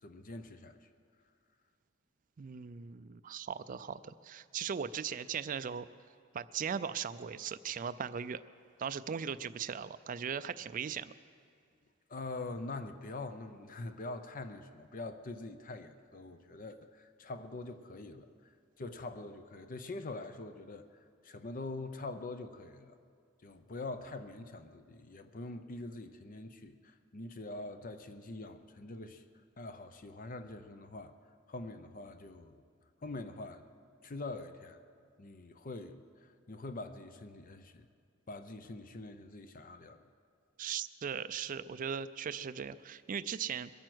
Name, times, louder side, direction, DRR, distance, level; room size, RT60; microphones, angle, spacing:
voice 1, 0.0-0.8 12.1-18.5 18.8-20.9 21.2-23.0 23.4-29.2 29.6-31.1 31.5-32.6 33.0-33.7 34.0-34.8 35.2-37.9 38.3-40.0, left 2 dB, 45° left, 9 dB, 0.6 m, -44 dB
voice 2, 2.4-5.9 6.3-8.4 8.8-11.1 40.6-43.7, right 7 dB, 40° right, 14 dB, 0.4 m, -38 dB
22.0 x 9.1 x 6.2 m, 2.2 s
head